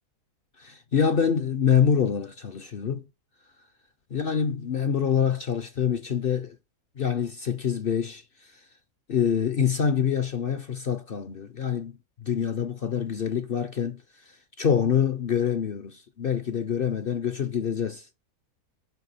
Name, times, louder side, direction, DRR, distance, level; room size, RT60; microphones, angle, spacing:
voice 1, 0.6-3.0 4.1-6.6 7.0-8.6 9.1-18.1, left 7 dB, 55° left, 0.6 m, -26 dB
8.1 x 5.6 x 4.1 m
omnidirectional pair, 1.6 m